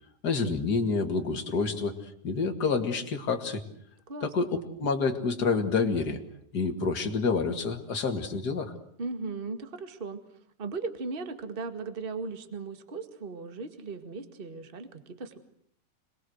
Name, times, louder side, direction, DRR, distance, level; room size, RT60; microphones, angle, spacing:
voice 1, 0.2-3.6 4.2-6.2 6.5-8.7, left 4 dB, 35° left, 5 dB, 2.0 m, -28 dB
voice 2, 4.1-4.5 9.0-10.2 10.6-15.4, right 4 dB, 30° right, 8 dB, 1.0 m, -37 dB
27.0 x 21.5 x 8.0 m, 0.67 s
omnidirectional pair, 4.6 m